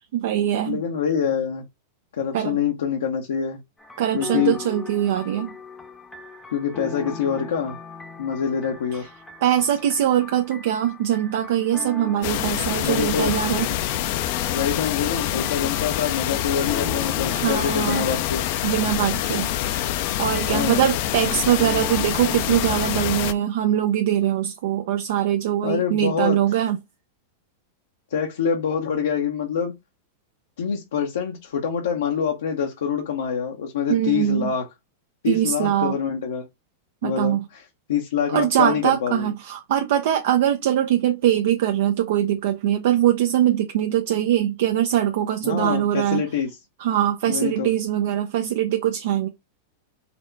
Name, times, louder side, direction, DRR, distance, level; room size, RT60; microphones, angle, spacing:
voice 1, 0.1-0.8 2.3-2.6 4.0-5.5 9.4-13.7 17.3-18.0 18.6-19.5 20.2-26.8 33.9-34.5 35.2-35.9 37.0-37.4 38.3-46.2 46.8-49.3, right 11 dB, 70° right, 0.5 m, -22 dB
voice 2, 0.7-1.6 2.2-3.6 4.1-4.6 6.5-7.8 8.2-9.1 12.8-13.4 14.5-18.4 20.5-20.9 25.6-26.4 28.1-29.7 30.6-34.6 35.2-36.4 37.0-37.6 37.9-39.3 45.4-46.5 47.3-47.7, left 7 dB, 85° left, 0.8 m, -25 dB
sound 1, 3.8-22.9, left 3 dB, 10° left, 0.7 m, -40 dB
sound 2, 12.2-23.3, left 13 dB, 60° left, 0.4 m, -26 dB
4.2 x 2.2 x 3.9 m
hypercardioid pair, 120°, 0 cm